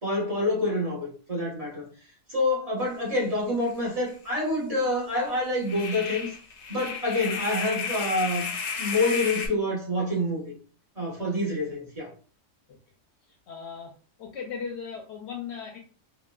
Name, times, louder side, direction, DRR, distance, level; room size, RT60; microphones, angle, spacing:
voice 1, 0.0-1.9 2.3-6.3 6.7-8.5 8.8-10.5 11.0-12.1, left 1 dB, 30° right, 0.9 m, -27 dB
sound 1, 3.7-3.8 4.1-4.2 5.6-9.5, left 5 dB, 80° left, 0.3 m, -33 dB
voice 2, 13.5-13.9 14.2-15.8, left 6 dB, 65° left, 0.7 m, -37 dB
3.8 x 2.1 x 2.3 m
omnidirectional pair, 1.4 m